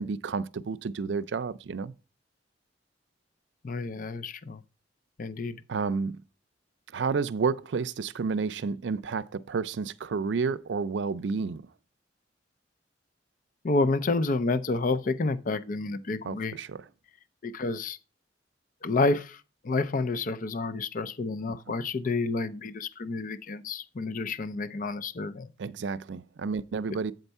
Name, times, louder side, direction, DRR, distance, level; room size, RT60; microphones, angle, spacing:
voice 1, 0.0-1.9 5.7-6.2 6.9-11.7 16.2-16.9 21.5-21.6 25.6-27.1, right 5 dB, 80° right, 0.4 m, -30 dB
voice 2, 3.6-4.6 5.2-5.6 13.6-16.6 17.4-18.0 18.8-25.5, left 3 dB, 50° left, 0.5 m, -29 dB
8.0 x 4.5 x 5.3 m
head